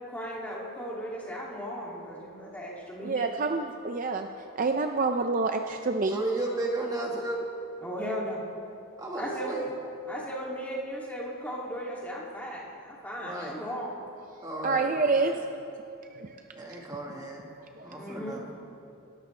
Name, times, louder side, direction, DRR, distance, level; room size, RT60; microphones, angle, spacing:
voice 1, 0.1-3.3 7.8-8.4 9.2-9.6 10.1-14.0 17.8-18.4, equal, 5° left, -5 dB, 2.6 m, -36 dB
voice 2, 3.0-4.3 4.6-6.2 14.6-15.3 16.2-16.3 16.7-16.9 17.8-17.9, right 3 dB, 35° right, 5 dB, 0.5 m, -27 dB
voice 3, 6.1-7.5 9.0-9.6 13.2-13.5 14.4-15.4 16.5-17.4 17.8-18.5, right 2 dB, 15° right, -1 dB, 1.6 m, -34 dB
26.0 x 13.0 x 3.3 m, 2.7 s
head